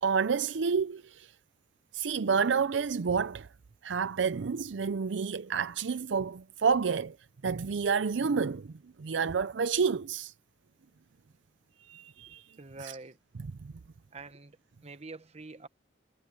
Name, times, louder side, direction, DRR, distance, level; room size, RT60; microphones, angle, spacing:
voice 1, 0.0-1.3 1.9-3.5 3.8-7.2 7.4-8.7 9.0-10.3 11.9-12.4 12.8-12.9 13.6-13.7, right 5 dB, 70° right, 0.5 m, -29 dB
voice 2, 12.6-13.2 14.1-14.6 14.8-15.7, right 3 dB, 35° right, 1.2 m, -45 dB
head